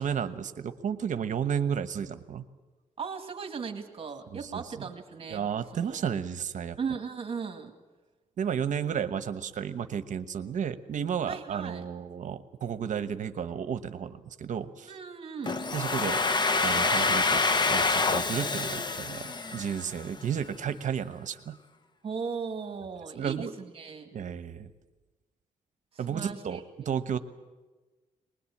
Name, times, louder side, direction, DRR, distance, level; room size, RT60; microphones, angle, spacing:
voice 1, 0.0-2.4 4.3-4.8 5.3-6.8 8.4-14.9 15.7-17.4 17.7-21.6 23.1-23.5 24.1-24.7 26.0-27.2, right 8 dB, 60° right, 11 dB, 1.1 m, -33 dB
voice 2, 3.0-5.5 5.7-6.2 6.8-7.7 11.3-11.8 14.9-15.5 22.0-24.1 26.1-26.9, right 5 dB, 40° right, 5 dB, 2.2 m, -37 dB
Domestic sounds home sounds, 15.5-20.2, left 4 dB, 30° left, 0.9 m, -27 dB
23.0 x 20.5 x 8.6 m, 1.2 s
wide cardioid pair, 155°, 14 cm